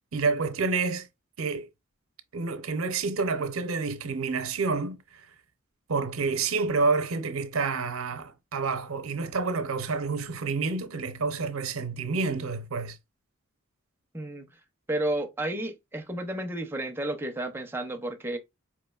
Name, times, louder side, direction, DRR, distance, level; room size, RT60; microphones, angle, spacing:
voice 1, 0.1-1.1 1.4-1.7 2.3-5.0 5.9-13.0, right 4 dB, 85° right, 0.7 m, -28 dB
voice 2, 14.1-14.5 14.9-18.4, right 1 dB, 10° right, 0.6 m, -32 dB
4.9 x 3.0 x 2.3 m
head